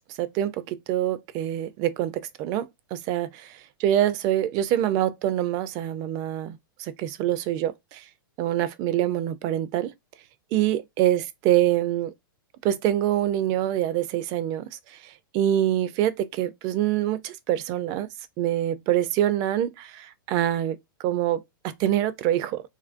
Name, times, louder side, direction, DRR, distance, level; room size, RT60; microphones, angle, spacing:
voice 1, 0.2-2.7 2.9-3.5 3.8-8.0 8.4-9.9 10.5-12.1 12.6-14.6 15.3-18.1 18.4-20.8 21.0-22.6, right 12 dB, 35° right, 0.4 m, -25 dB
2.9 x 2.5 x 2.5 m
hypercardioid pair, 140°, 12 cm